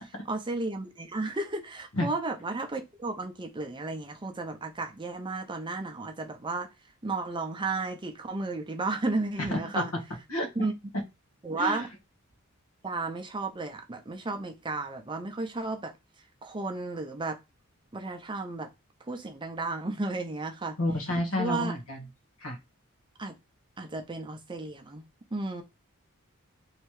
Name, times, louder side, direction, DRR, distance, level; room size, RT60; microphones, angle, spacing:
voice 1, 0.0-6.7 7.0-9.9 10.6-10.7 11.4-11.9 12.8-15.9 16.4-17.4 17.9-18.7 19.0-20.8 21.3-21.7 23.2-23.3 23.8-25.0 25.3-25.6, right 3 dB, 20° right, 0.6 m, -33 dB
voice 2, 9.4-9.8 10.3-10.7 11.6-11.8 20.8-22.0 22.4-22.6, left 1 dB, 80° left, 1.3 m, -30 dB
3.2 x 2.9 x 4.6 m
head